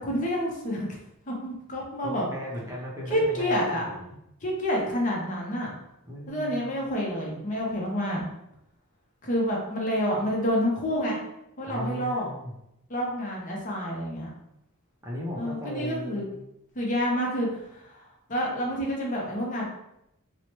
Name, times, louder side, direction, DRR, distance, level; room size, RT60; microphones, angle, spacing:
voice 1, 0.0-0.9 1.3-2.3 3.1-3.9 4.4-5.7 6.3-8.3 9.2-11.2 11.6-12.3 12.9-14.3 15.4-16.2 16.7-18.0 18.3-19.6, equal, 35° left, -2 dB, 0.6 m, -28 dB
voice 2, 2.0-4.2 6.1-6.8 11.6-12.5 15.0-16.3, equal, 15° right, -5 dB, 0.5 m, -36 dB
3.0 x 2.1 x 2.9 m, 0.84 s
head